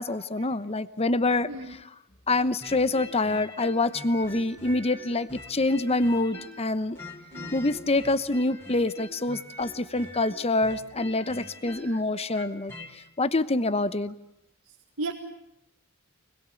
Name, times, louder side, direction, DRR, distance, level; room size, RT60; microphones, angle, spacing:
voice 1, 0.0-1.5 2.3-7.0 7.5-12.7 13.2-14.1, left 2 dB, 30° left, 14 dB, 1.0 m, -26 dB
sound 1, 2.6-6.7 7.0-12.9, left 2 dB, 10° left, 3.9 m, -43 dB
voice 2, 11.7-12.0 14.7-15.1, right 2 dB, 75° right, 2 dB, 1.9 m, -38 dB
24.5 x 21.5 x 8.4 m, 0.80 s
head